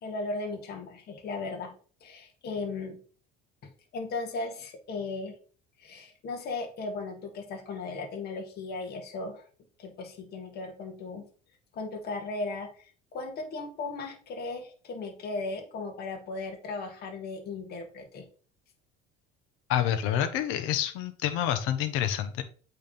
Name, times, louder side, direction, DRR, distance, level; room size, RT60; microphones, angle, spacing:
voice 1, 0.0-1.7 2.0-3.0 3.9-5.4 5.8-9.4 9.8-11.3 11.7-18.3, left 3 dB, 50° left, 4 dB, 1.8 m, -36 dB
voice 2, 19.7-22.4, left 10 dB, 75° left, 10 dB, 1.0 m, -28 dB
8.0 x 3.5 x 5.3 m, 0.40 s
cardioid pair, 130°, 21 cm